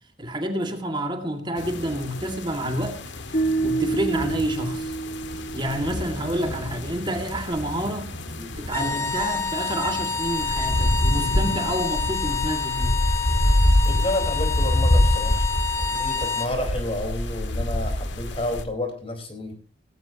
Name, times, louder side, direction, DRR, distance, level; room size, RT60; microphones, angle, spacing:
voice 1, 0.2-3.0 3.6-5.0 5.5-8.1 8.5-13.0, right 1 dB, 25° right, 5 dB, 2.1 m, -28 dB
sound 1, 1.6-18.6, left 1 dB, 75° left, 1.7 m, -26 dB
sound 2, 3.3-6.5, right 3 dB, 45° left, 1.6 m, -28 dB
voice 2, 8.4-9.1 13.8-15.5 15.8-19.5, left 1 dB, 30° left, 5 dB, 4.5 m, -30 dB
sound 3, 8.7-16.6, left 5 dB, 15° left, 1.0 m, -28 dB
18.0 x 15.5 x 2.9 m, 0.40 s
head